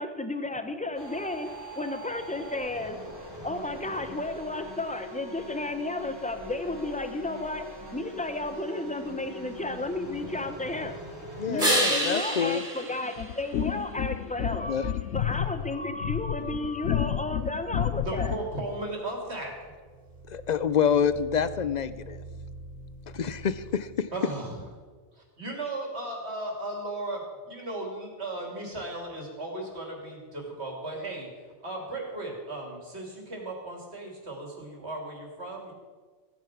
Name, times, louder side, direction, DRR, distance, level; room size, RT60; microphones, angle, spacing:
voice 1, 0.0-3.0 3.4-7.7 7.9-11.0 11.5-18.3, left 2 dB, 5° left, 8 dB, 0.8 m, -33 dB
sound 1, 0.9-11.6, left 1 dB, 20° right, 3.2 m, -42 dB
voice 2, 11.4-12.7 14.7-14.8 20.3-22.2 23.1-23.8, left 7 dB, 55° left, 14 dB, 0.5 m, -27 dB
sound 2, 11.6-14.1 19.9-23.9, right 1 dB, 40° right, 3.4 m, -32 dB
sound 3, 13.2-18.6, left 10 dB, 80° left, 0.9 m, -31 dB
voice 3, 18.0-19.5 24.1-24.5 25.4-35.7, right 2 dB, 65° right, 0 dB, 3.2 m, -36 dB
15.5 x 9.3 x 6.0 m, 1.5 s
omnidirectional pair, 1.2 m